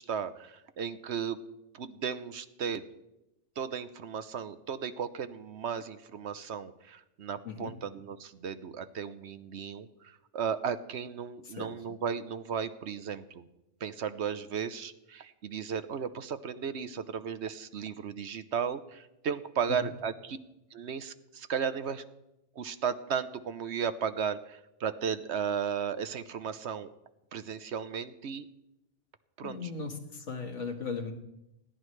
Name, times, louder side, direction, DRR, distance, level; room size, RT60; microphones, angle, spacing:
voice 1, 0.0-1.4 1.7-2.8 3.6-13.5 13.8-20.4 20.7-22.0 22.6-26.9 27.3-28.5 29.4-29.7, right 7 dB, 65° right, 12 dB, 1.0 m, -35 dB
voice 2, 29.4-31.1, left 5 dB, 75° left, 3 dB, 2.0 m, -37 dB
20.5 x 15.5 x 3.3 m, 0.89 s
omnidirectional pair, 1.3 m